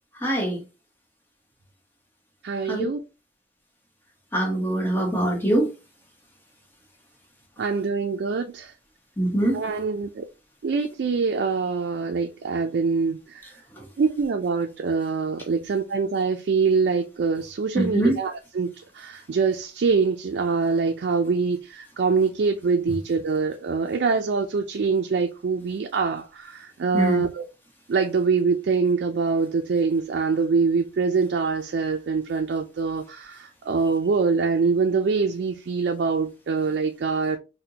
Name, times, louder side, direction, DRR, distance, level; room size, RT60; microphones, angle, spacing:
voice 1, 0.2-0.6 2.7-2.8 4.3-5.7 9.2-9.6 17.7-18.1 26.9-27.2, right 1 dB, 10° left, 1.0 m, -23 dB
voice 2, 2.4-3.0 7.6-8.7 9.5-10.3 10.6-13.4 14.0-18.7 19.0-27.4 27.9-37.4, right 4 dB, 65° right, 0.4 m, -24 dB
4.2 x 2.1 x 2.7 m
head